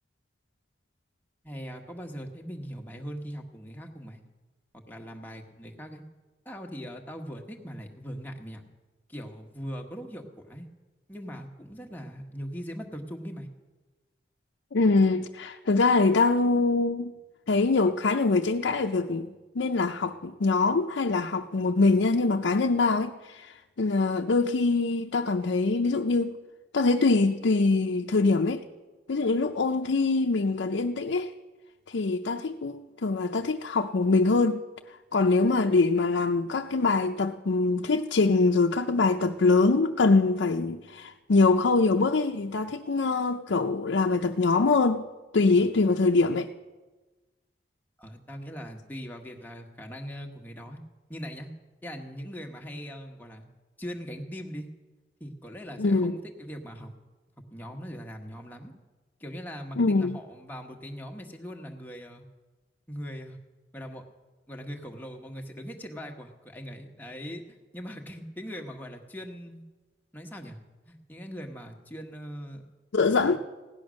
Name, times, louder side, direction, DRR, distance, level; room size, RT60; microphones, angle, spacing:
voice 1, 1.4-4.2 4.9-6.0 6.4-8.6 9.1-10.7 11.1-13.5 48.0-50.8 51.1-51.5 51.8-53.5 53.8-54.7 55.2-57.0 57.5-58.7 59.2-62.2 62.9-63.4 63.7-64.0 64.5-69.6 70.1-70.6 70.8-72.6 73.2-73.4, equal, 10° left, 1.3 m, -40 dB
voice 2, 14.7-17.1 17.5-26.4 26.7-28.6 29.1-31.3 31.9-34.6 35.1-45.1 45.3-46.5 55.8-56.2 59.8-60.2 72.9-73.4, left 3 dB, 90° left, 0.6 m, -24 dB
16.5 x 10.5 x 6.3 m
head